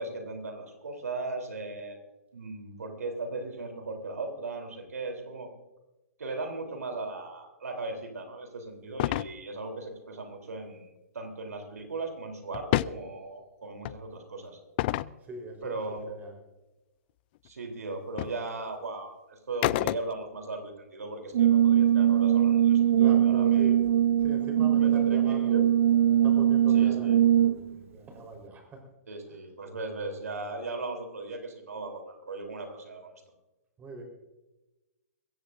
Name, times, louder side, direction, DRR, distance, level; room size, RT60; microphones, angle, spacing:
voice 1, 0.0-2.0 2.3-5.5 6.2-14.6 15.6-16.2 17.4-23.7 24.8-25.6 26.7-27.2 29.1-33.2, right 2 dB, 75° right, 4 dB, 3.5 m, -37 dB
sound 1, 9.0-9.3 12.5-13.0 13.8-14.0 14.8-15.1 17.5-17.6 18.2-18.4 19.6-20.3, left 17 dB, 40° left, 0.3 m, -28 dB
voice 2, 15.2-15.8 16.1-16.3 23.0-23.8 24.2-25.6 26.1-28.8 33.8-34.0, right 2 dB, 20° right, 2 dB, 4.2 m, -42 dB
Brass instrument, 21.3-27.7, right 10 dB, 55° right, 0.4 m, -22 dB
22.0 x 16.0 x 2.6 m, 1.1 s
hypercardioid pair, 125°, 9 cm